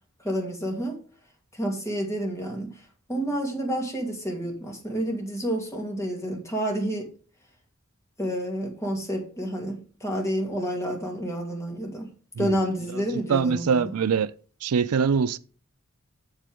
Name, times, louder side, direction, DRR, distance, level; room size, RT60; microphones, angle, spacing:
voice 1, 0.2-1.0 1.5-2.8 3.1-7.1 8.2-12.1 12.4-13.8, equal, 15° left, 2.5 m, -29 dB
voice 2, 13.3-14.3 14.6-15.4, right 6 dB, 85° right, 0.5 m, -23 dB
8.0 x 7.6 x 3.6 m
head